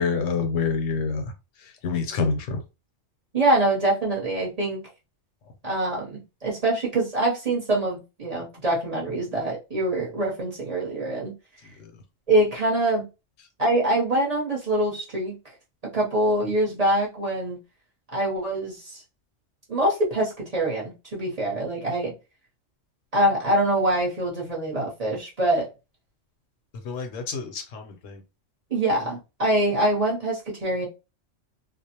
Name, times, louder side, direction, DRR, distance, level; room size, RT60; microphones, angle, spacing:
voice 1, 0.0-1.3 1.8-2.6 26.8-28.2, left 5 dB, 85° left, 1.0 m, -27 dB
voice 2, 3.3-4.8 5.6-11.3 12.3-13.1 13.6-15.4 15.9-17.6 18.1-19.0 19.7-22.1 23.1-25.7 28.7-30.9, right 1 dB, 35° right, 0.8 m, -24 dB
2.5 x 2.1 x 2.8 m
omnidirectional pair, 1.3 m